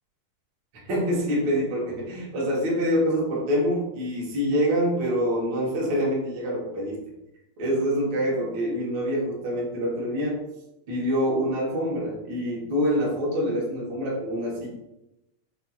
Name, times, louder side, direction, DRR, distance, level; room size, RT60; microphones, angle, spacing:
voice 1, 0.7-7.0 7.6-10.4 10.9-14.7, equal, 75° right, -4 dB, 1.0 m, -26 dB
5.3 x 2.8 x 2.3 m, 0.88 s
omnidirectional pair, 3.6 m